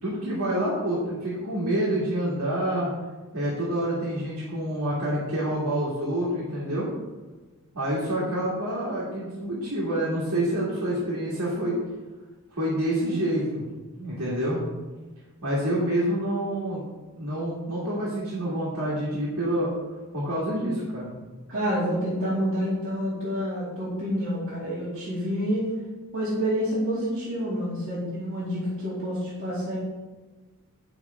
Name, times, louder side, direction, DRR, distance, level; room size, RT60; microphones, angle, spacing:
voice 1, 0.0-2.9 3.3-6.9 7.7-11.8 12.5-13.6 14.0-14.6 15.4-16.8 17.1-19.7 20.1-21.1, right 1 dB, 85° right, -7 dB, 2.3 m, -27 dB
voice 2, 20.5-20.8 21.5-25.7 26.1-29.8, equal, 65° right, -11 dB, 2.5 m, -28 dB
8.2 x 7.0 x 3.6 m, 1.3 s
head